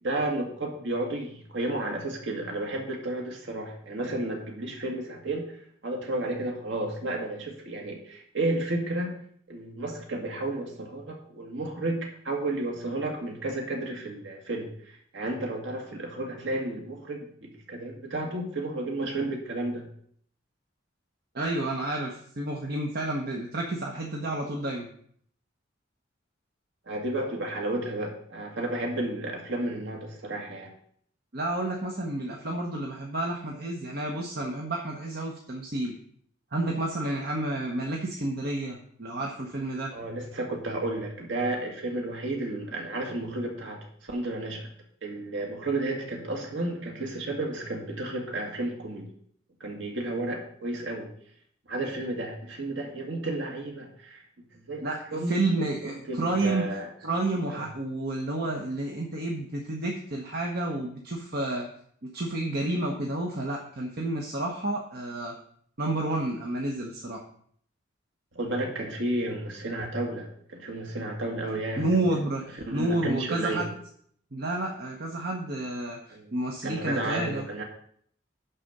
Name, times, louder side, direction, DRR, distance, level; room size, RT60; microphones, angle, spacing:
voice 1, 0.0-9.2 9.5-19.9 26.9-30.7 39.9-44.7 45.0-49.1 49.6-51.1 51.7-54.2 54.5-54.8 55.1-55.3 55.8-56.9 57.5-57.6 68.3-71.9 72.7-73.7 76.1-76.3 76.6-77.6, right 2 dB, 70° right, 0 dB, 1.8 m, -32 dB
voice 2, 21.3-24.9 31.3-35.9 36.5-39.9 54.8-55.0 55.3-56.7 57.0-61.7 62.1-65.4 65.8-67.2 71.8-73.7 74.3-77.5, right 2 dB, 55° right, 0 dB, 1.1 m, -30 dB
11.5 x 4.2 x 6.6 m, 0.63 s
head